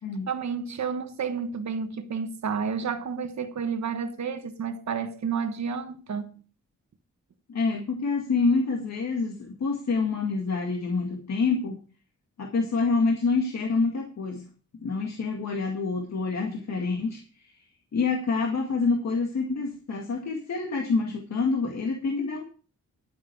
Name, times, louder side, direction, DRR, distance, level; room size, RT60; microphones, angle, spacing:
voice 1, 0.3-6.4, right 6 dB, 65° right, 1.3 m, -31 dB
voice 2, 7.5-11.8 12.4-14.5 14.8-17.5 17.9-22.4, left 4 dB, 60° left, 2.0 m, -27 dB
11.0 x 9.2 x 4.7 m
wide cardioid pair, 155°, 30 cm